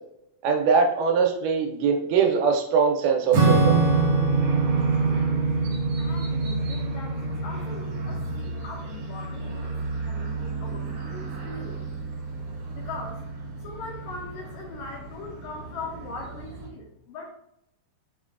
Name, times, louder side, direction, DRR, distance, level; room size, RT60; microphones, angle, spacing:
voice 1, 0.4-3.8, right 5 dB, 90° right, 3 dB, 2.2 m, -22 dB
Acoustic guitar / Strum, 3.3-8.1, right 4 dB, 70° right, 1.4 m, -25 dB
sound 1, 3.5-16.7, right 3 dB, 55° right, 2.1 m, -30 dB
voice 2, 6.0-11.9 12.7-13.2 13.6-17.3, left 3 dB, 80° left, -1 dB, 1.7 m, -40 dB
5.7 x 2.2 x 2.4 m, 0.78 s
omnidirectional pair, 3.7 m